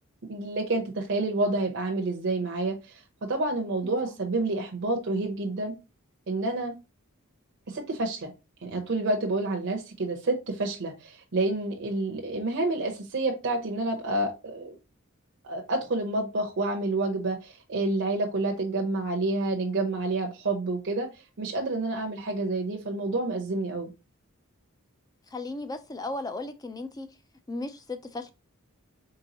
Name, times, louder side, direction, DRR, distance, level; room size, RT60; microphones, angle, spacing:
voice 1, 0.3-5.8 6.3-6.8 7.7-8.3 8.6-14.8 15.4-21.1 21.4-23.9, right 2 dB, 55° right, 0.7 m, -29 dB
voice 2, 25.3-27.1 27.5-28.3, left 2 dB, 20° left, 0.4 m, -35 dB
3.8 x 3.6 x 2.8 m
head